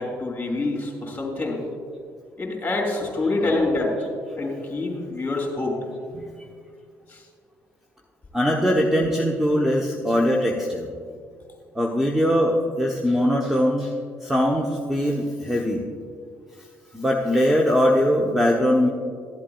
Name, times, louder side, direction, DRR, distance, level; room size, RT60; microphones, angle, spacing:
voice 1, 0.0-1.6 2.4-4.0 4.3-5.8 7.1-7.2, left 2 dB, 20° left, 0 dB, 2.8 m, -26 dB
voice 2, 3.4-3.7 6.1-6.3 8.3-10.9 11.7-13.9 14.2-15.8 16.9-18.9, equal, 5° right, 0 dB, 0.9 m, -21 dB
13.0 x 11.5 x 2.4 m, 2.1 s
figure-of-eight pair, 50°, 9 cm